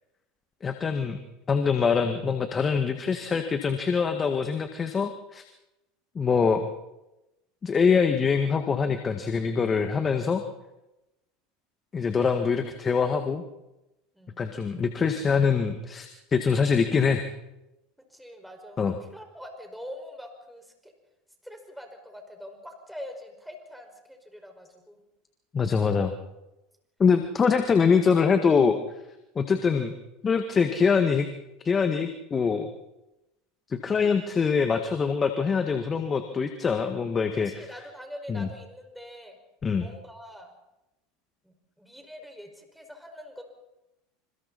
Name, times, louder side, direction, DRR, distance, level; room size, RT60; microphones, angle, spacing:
voice 1, 0.6-1.2 1.5-5.4 6.2-6.7 7.6-10.4 11.9-13.4 14.4-17.3 18.8-18.9 25.5-26.1 27.0-28.8 29.4-29.9 30.2-31.3 31.6-32.7 33.7-37.7 38.3-38.5 39.6-39.8, left 5 dB, 25° left, 7 dB, 1.8 m, -24 dB
voice 2, 14.1-14.5 18.1-18.8 19.1-20.9 21.4-25.0 37.4-39.4 39.8-40.5 41.4-43.4, equal, ahead, 3 dB, 5.5 m, -44 dB
27.5 x 27.0 x 4.3 m, 0.94 s
hypercardioid pair, 80°, 0 cm